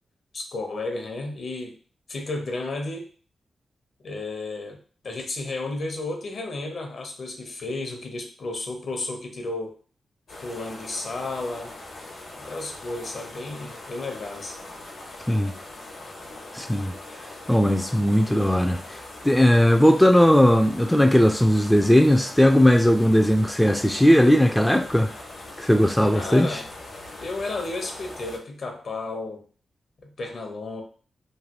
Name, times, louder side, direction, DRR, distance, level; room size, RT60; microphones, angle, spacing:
voice 1, 0.3-1.7 2.1-3.1 4.0-9.7 10.4-11.7 12.3-14.6 26.1-26.6 27.2-29.4 30.0-30.8, left 2 dB, 65° left, 3 dB, 0.8 m, -33 dB
sound 1, 10.3-28.4, left 2 dB, 80° left, 1.1 m, -41 dB
voice 2, 16.5-16.9 17.5-18.8 19.2-25.1 25.6-26.6, equal, 5° left, 4 dB, 0.4 m, -18 dB
3.2 x 2.2 x 2.9 m, 0.41 s
supercardioid pair, 50°, 0 cm